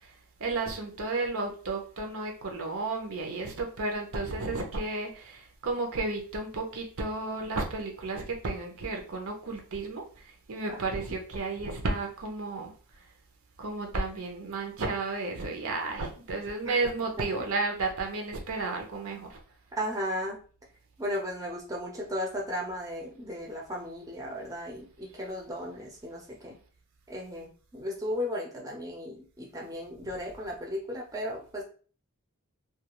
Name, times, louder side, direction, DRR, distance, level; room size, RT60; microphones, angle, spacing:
voice 1, 0.4-10.0 10.5-12.7 13.6-19.4 30.0-30.1, right 3 dB, 65° right, 2 dB, 0.7 m, -32 dB
voice 2, 19.7-20.4 21.0-26.6 27.1-31.6, equal, 15° right, -2 dB, 0.6 m, -35 dB
2.3 x 2.3 x 2.9 m, 0.40 s
head